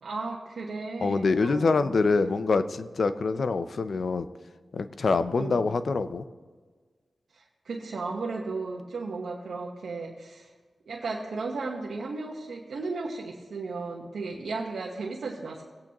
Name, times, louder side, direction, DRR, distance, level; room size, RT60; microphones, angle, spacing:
voice 1, 0.0-2.0 5.4-5.7 7.3-10.5 10.9-15.6, right 3 dB, 80° right, -3 dB, 1.2 m, -35 dB
voice 2, 1.0-4.3 4.7-6.2, left 4 dB, 65° left, 11 dB, 0.6 m, -25 dB
19.5 x 8.6 x 3.0 m, 1.4 s
cardioid pair, 60°, 0 cm